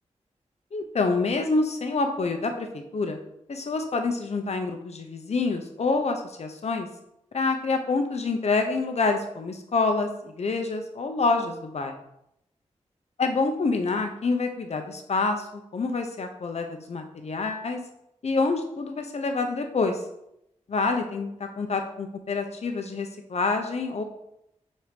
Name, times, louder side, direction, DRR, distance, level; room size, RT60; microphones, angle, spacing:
voice 1, 0.7-3.2 3.5-6.9 7.3-11.9 13.2-17.8 18.2-20.0 20.7-24.0, left 3 dB, 65° left, 5 dB, 0.9 m, -27 dB
4.9 x 4.2 x 5.2 m, 0.81 s
wide cardioid pair, 85°, 12 cm